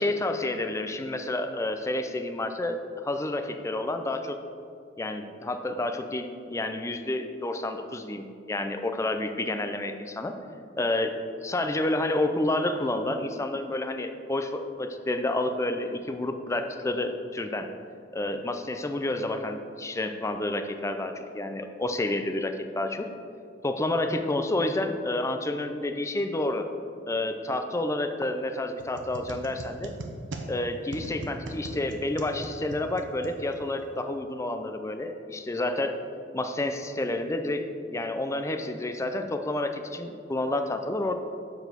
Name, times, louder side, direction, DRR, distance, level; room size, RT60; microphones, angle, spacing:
voice 1, 0.0-2.8 3.0-4.4 5.0-10.4 10.8-11.1 11.4-17.7 18.1-23.1 23.6-26.7 27.1-29.9 30.5-36.0 36.3-41.1, left 2 dB, 15° left, 7 dB, 0.4 m, -29 dB
sound 1, 28.8-33.9, right 2 dB, 70° right, 0.7 m, -40 dB
7.1 x 4.0 x 6.6 m, 2.4 s
head